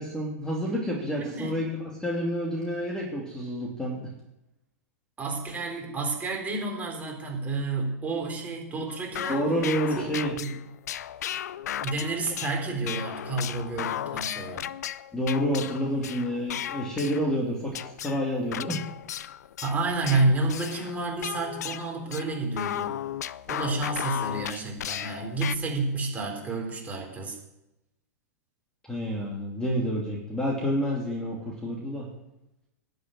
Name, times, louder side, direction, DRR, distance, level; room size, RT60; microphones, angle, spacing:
voice 1, 0.0-4.0 9.3-10.3 15.1-18.8 28.8-32.1, equal, 5° left, -2 dB, 2.7 m, -29 dB
voice 2, 1.2-1.6 5.2-9.4 9.9-10.0 10.4-10.5 11.8-14.7 19.6-23.0 23.5-27.4, right 3 dB, 15° right, 0 dB, 3.8 m, -30 dB
sound 1, 8.9-17.4 17.7-25.6, left 11 dB, 75° left, 0.5 m, -35 dB
11.0 x 6.8 x 9.0 m, 0.92 s
hypercardioid pair, 120°, 9 cm